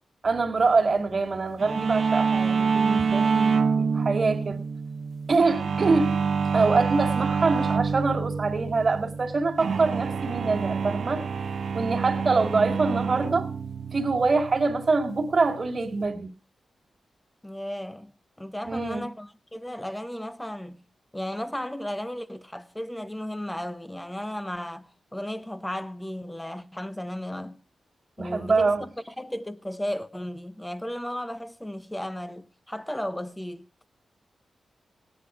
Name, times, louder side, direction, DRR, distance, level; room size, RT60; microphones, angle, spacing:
voice 1, 0.2-4.6 5.3-6.2 6.5-11.2 11.7-13.5 13.9-16.3 18.6-19.0 28.2-28.8, right 3 dB, 40° right, 1.8 m, -24 dB
sound 1, 1.6-16.1, right 5 dB, 60° right, 0.9 m, -27 dB
voice 2, 5.3-5.7 17.4-18.1 18.4-20.8 21.1-27.6 28.2-33.6, left 1 dB, 5° left, 0.8 m, -35 dB
17.5 x 10.5 x 4.9 m
wide cardioid pair, 155°, 0 cm